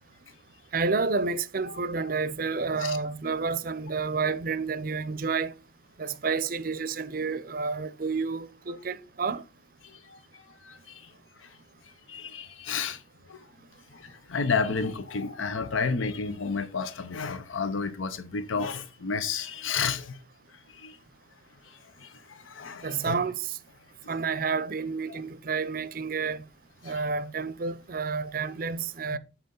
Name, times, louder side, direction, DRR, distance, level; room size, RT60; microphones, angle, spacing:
voice 1, 0.7-5.5 6.0-9.4 22.8-23.6 24.1-26.4 26.8-29.2, right 4 dB, 45° right, 0.5 m, -30 dB
voice 2, 1.7-2.1 2.8-3.0 10.1-10.2 10.6-11.0 12.1-13.0 13.3-13.4 13.9-20.2 20.7-21.0 22.0-23.2 25.1-25.2 26.8-27.0 29.1-29.2, left 5 dB, 90° left, 0.8 m, -31 dB
7.9 x 4.3 x 5.2 m
head